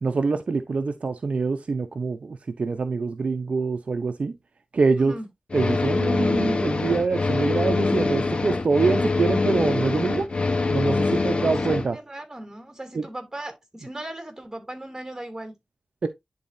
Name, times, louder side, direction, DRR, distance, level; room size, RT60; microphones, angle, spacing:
voice 1, 0.0-4.3 4.7-5.1 5.5-10.3 10.7-12.0 12.9-13.1 16.0-16.1, right 4 dB, 65° right, 0.7 m, -25 dB
voice 2, 5.0-5.3 11.0-15.6, right 1 dB, 20° right, 2.7 m, -38 dB
sound 1, 5.5-11.9, left 3 dB, 50° left, 1.0 m, -24 dB
10.5 x 4.1 x 2.7 m
wide cardioid pair, 75°, 2 cm